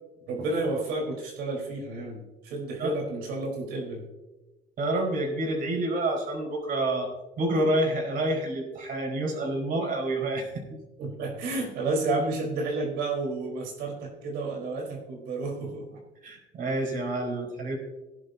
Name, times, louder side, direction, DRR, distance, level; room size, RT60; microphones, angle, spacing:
voice 1, 0.3-4.0 11.0-16.0, right 2 dB, 90° right, 1 dB, 4.0 m, -31 dB
voice 2, 4.8-7.1 7.4-10.8 16.2-17.8, right 1 dB, 55° right, 0 dB, 4.8 m, -28 dB
18.0 x 11.0 x 2.8 m, 1.1 s
cardioid pair, 110°, 17 cm